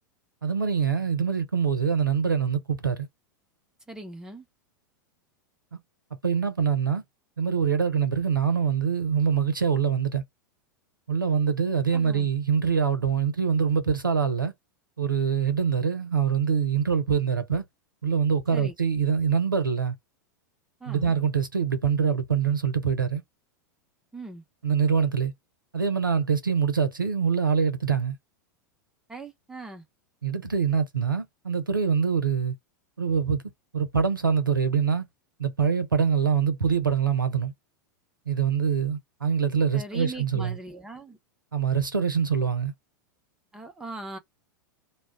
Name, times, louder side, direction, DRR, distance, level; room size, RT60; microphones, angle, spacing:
voice 1, 0.4-3.1 6.2-7.0 7.4-10.2 11.1-14.5 15.0-17.6 18.0-20.0 20.9-23.2 24.6-25.3 25.7-28.2 30.2-32.5 33.0-33.4 33.7-35.1 35.4-37.5 38.3-40.6 41.5-42.7, right 6 dB, 85° right, 0.7 m, -24 dB
voice 2, 3.9-4.5 11.9-12.3 18.5-18.7 20.8-21.2 24.1-24.4 29.1-29.8 39.7-41.2 43.5-44.2, right 2 dB, 5° right, 0.9 m, -40 dB
2.3 x 2.2 x 3.5 m
figure-of-eight pair, 90°, 11 cm